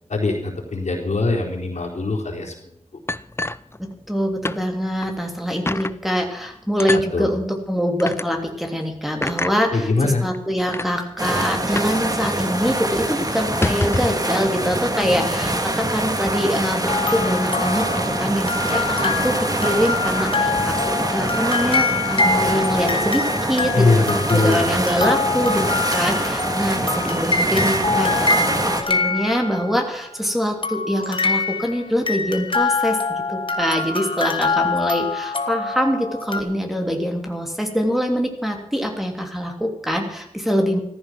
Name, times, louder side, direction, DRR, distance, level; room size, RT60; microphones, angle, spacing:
voice 1, 0.1-2.5 7.1-7.3 9.7-10.2 23.7-24.6, left 3 dB, 75° left, -1 dB, 4.3 m, -21 dB
sound 1, 3.1-4.2 4.4-4.6 5.0-5.1 5.7-6.0 6.8-7.1 8.0-8.3 9.2-9.6 10.3-10.4 10.7-10.9 11.8-12.0 12.3-12.4 12.7-12.9 13.4-14.2, left 2 dB, 20° left, 0.5 m, -26 dB
voice 2, 3.8-25.6 25.9-40.8, equal, ahead, 2 dB, 3.1 m, -24 dB
sound 2, 11.2-28.8, right 1 dB, 30° right, 1.9 m, -24 dB
sound 3, 16.9-29.9 30.6-36.4, left 3 dB, 45° left, 1.7 m, -24 dB
14.5 x 14.5 x 6.2 m, 0.74 s
wide cardioid pair, 55°, 12 cm